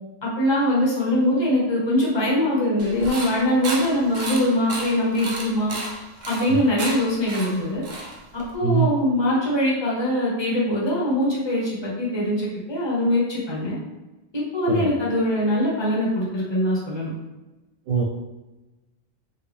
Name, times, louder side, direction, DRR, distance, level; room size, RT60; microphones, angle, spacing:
voice 1, 0.2-5.8 6.3-7.8 8.5-13.8 14.3-17.1, left 1 dB, 25° left, -5 dB, 0.9 m, -22 dB
sound 1, 2.8-8.5, right 2 dB, 50° right, 0.6 m, -33 dB
voice 2, 8.6-8.9 14.7-14.9 17.9-18.0, right 6 dB, 85° right, 0 dB, 1.0 m, -21 dB
3.8 x 2.3 x 3.3 m, 1.1 s
omnidirectional pair, 1.3 m